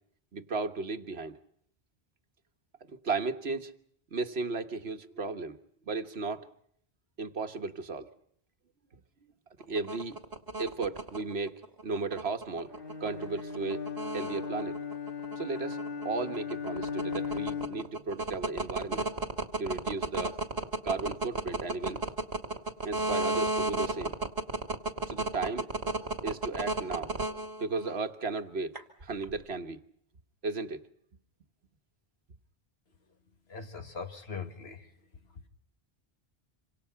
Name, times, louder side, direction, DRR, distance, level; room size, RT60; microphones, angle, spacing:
voice 1, 0.3-1.4 2.9-3.8 4.1-5.6 5.9-6.5 7.2-8.1 8.9-9.0 9.7-10.2 10.6-12.8 13.0-14.8 15.4-15.8 16.0-19.1 19.6-20.4 20.8-22.0 22.8-24.2 25.1-25.7 26.2-27.1 27.6-29.8 30.4-30.8, right 3 dB, 85° right, 7 dB, 1.6 m, -35 dB
sound 1, 9.6-28.0 28.8-29.3, right 2 dB, 65° right, 2.5 m, -32 dB
Bowed string instrument, 12.7-18.0, left 5 dB, 60° left, 2.7 m, -37 dB
voice 2, 33.5-34.9, left 5 dB, 85° left, 6 dB, 2.2 m, -40 dB
26.5 x 26.0 x 5.8 m, 0.69 s
omnidirectional pair, 1.0 m